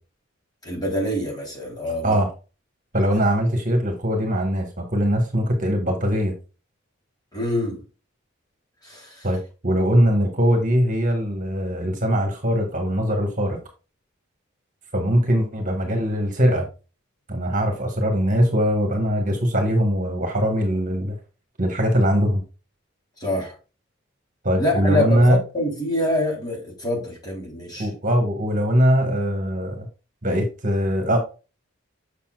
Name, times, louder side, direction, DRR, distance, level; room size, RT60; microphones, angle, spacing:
voice 1, 0.6-2.2 7.3-7.8 8.8-9.3 23.2-23.6 24.6-27.9, left 1 dB, 20° left, 3.5 m, -25 dB
voice 2, 2.9-6.3 9.2-13.6 14.9-16.7 17.3-21.2 21.6-22.4 24.4-25.4 27.8-29.9 30.2-31.2, equal, 40° right, 1.7 m, -21 dB
6.9 x 6.9 x 2.4 m
head